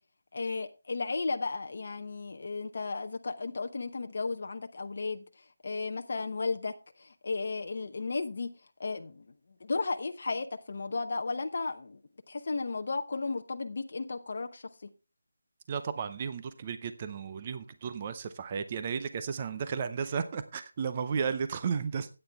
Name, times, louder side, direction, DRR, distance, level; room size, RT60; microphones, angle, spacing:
voice 1, 0.3-8.5 8.8-9.3 9.6-12.0 12.3-14.9, left 3 dB, 40° left, 0.8 m, -34 dB
voice 2, 15.7-22.1, right 6 dB, 20° right, 0.5 m, -34 dB
13.0 x 8.9 x 3.4 m
figure-of-eight pair, 180°, 0 cm